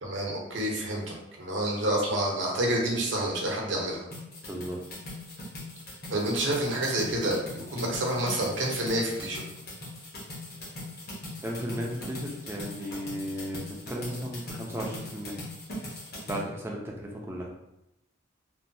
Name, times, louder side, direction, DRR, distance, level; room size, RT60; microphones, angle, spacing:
voice 1, 0.0-4.0 6.1-9.4, right 1 dB, 70° right, -1 dB, 0.7 m, -28 dB
sound 1, 4.1-16.4, left 1 dB, 50° left, 0.8 m, -40 dB
voice 2, 4.5-4.8 11.4-15.4 16.3-17.5, equal, 10° right, -2 dB, 0.4 m, -35 dB
3.0 x 2.2 x 2.6 m, 0.89 s
head